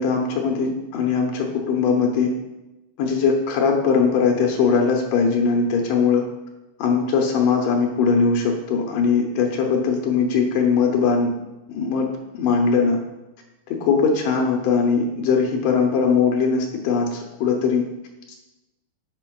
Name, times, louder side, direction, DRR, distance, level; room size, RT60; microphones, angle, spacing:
voice 1, 0.0-2.3 3.0-6.2 6.8-11.3 11.7-12.1 12.3-13.0 13.7-17.8 18.3-18.4, left 5 dB, 90° left, 1 dB, 1.4 m, -20 dB
11.5 x 4.4 x 2.3 m, 0.98 s
omnidirectional pair, 3.9 m